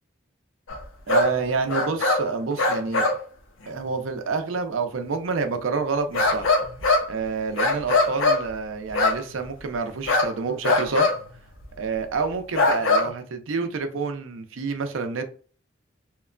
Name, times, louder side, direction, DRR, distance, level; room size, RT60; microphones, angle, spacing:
sound 1, 0.7-0.8 1.1-1.3 1.7-2.3 2.6-3.2 6.1-7.1 7.6-8.4 8.9-9.2 10.1-10.3 10.6-11.2 11.6-11.7 12.5-13.1, left 2 dB, 80° left, 0.6 m, -21 dB
voice 1, 1.1-3.1 3.7-6.5 7.1-11.1 11.8-15.3, right 4 dB, 85° right, 8 dB, 0.5 m, -28 dB
2.9 x 2.1 x 2.4 m, 0.40 s
head